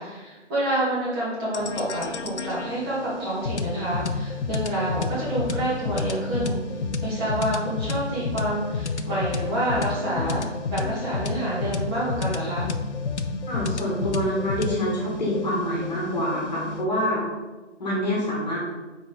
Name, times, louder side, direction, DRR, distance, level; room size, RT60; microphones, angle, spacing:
voice 1, 0.0-6.6 7.0-12.7, right 1 dB, 20° right, -9 dB, 2.1 m, -28 dB
sound 1, 1.5-16.9, left 4 dB, 65° left, 0.6 m, -30 dB
voice 2, 13.5-17.2 17.8-18.6, equal, 35° left, -4 dB, 1.7 m, -26 dB
6.0 x 4.6 x 4.1 m, 1.2 s
figure-of-eight pair, 145°, 37 cm